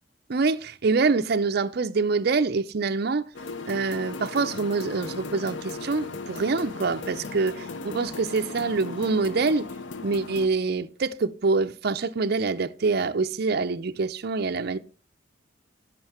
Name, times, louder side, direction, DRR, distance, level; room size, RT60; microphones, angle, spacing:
voice 1, 0.3-3.3 3.7-7.5 7.8-9.7 10.0-14.8, right 4 dB, 55° right, 0.6 m, -25 dB
sound 1, 3.3-10.5, left 4 dB, 70° left, 0.6 m, -37 dB
11.0 x 7.7 x 4.3 m
head